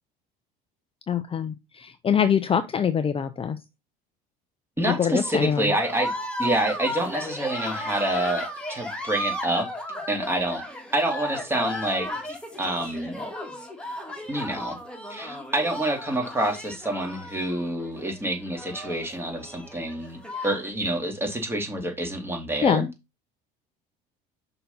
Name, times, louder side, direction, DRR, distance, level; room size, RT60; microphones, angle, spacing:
voice 1, 1.1-3.6 4.8-5.7 22.6-22.9, left 7 dB, 30° left, 0.7 m, -24 dB
voice 2, 4.8-6.1 6.4-9.7 10.1-10.6 10.9-12.1 12.6-13.2 14.3-14.8 15.1-20.2 20.4-22.9, right 1 dB, 10° right, 2.7 m, -27 dB
sound 1, 5.2-20.7, left 1 dB, 5° left, 2.3 m, -35 dB
5.7 x 4.0 x 5.6 m
supercardioid pair, 95°, 19 cm